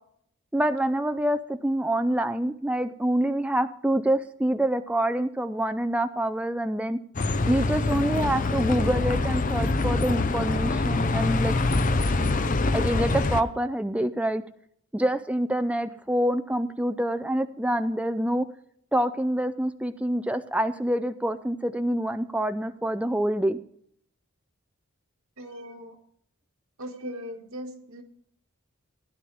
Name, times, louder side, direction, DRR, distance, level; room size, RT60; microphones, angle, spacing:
voice 1, 0.5-7.0 7.5-11.6 12.7-14.4 14.9-18.5 18.9-23.6, right 1 dB, 5° right, 9 dB, 0.4 m, -26 dB
Bus, 7.1-13.4, left 3 dB, 40° left, 0.6 m, -25 dB
voice 2, 25.4-26.0 26.8-28.0, equal, 80° right, 2 dB, 1.8 m, -39 dB
16.0 x 10.0 x 3.4 m, 0.66 s
head